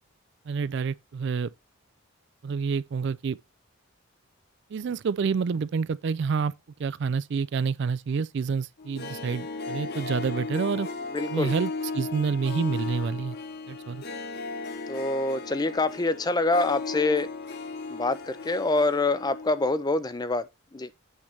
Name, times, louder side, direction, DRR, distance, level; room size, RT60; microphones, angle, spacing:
voice 1, 0.5-1.5 2.4-3.4 4.7-6.5 6.8-10.9 11.3-13.4 13.7-14.0, right 5 dB, 55° right, 0.3 m, -28 dB
Harp, 8.8-19.8 20.1-20.2, left 3 dB, 50° left, 0.9 m, -36 dB
voice 2, 11.1-11.5 14.9-17.3 17.9-20.9, left 2 dB, 20° left, 0.4 m, -26 dB
8.6 x 3.3 x 5.8 m
head